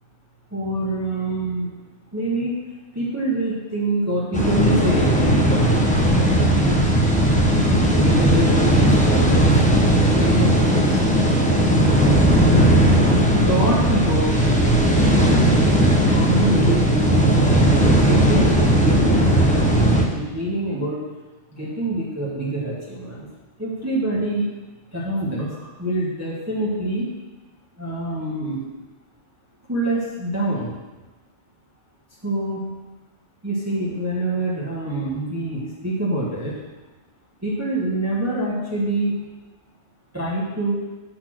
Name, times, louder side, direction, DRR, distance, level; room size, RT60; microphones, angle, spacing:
voice 1, 0.5-1.7 2.1-2.6 2.9-5.8 7.5-9.6 10.2-11.3 12.5-12.8 13.5-14.4 16.0-19.7 20.1-21.0 21.5-23.3 23.6-24.5 24.9-27.1 27.8-28.6 29.7-30.7 32.2-32.8 33.4-36.5 37.4-39.1 40.1-40.8, right 1 dB, 10° right, -7 dB, 1.2 m, -25 dB
sound 1, 4.3-20.0, right 1 dB, 5° left, 0.8 m, -17 dB
8.1 x 4.3 x 6.1 m, 1.2 s
omnidirectional pair, 1.4 m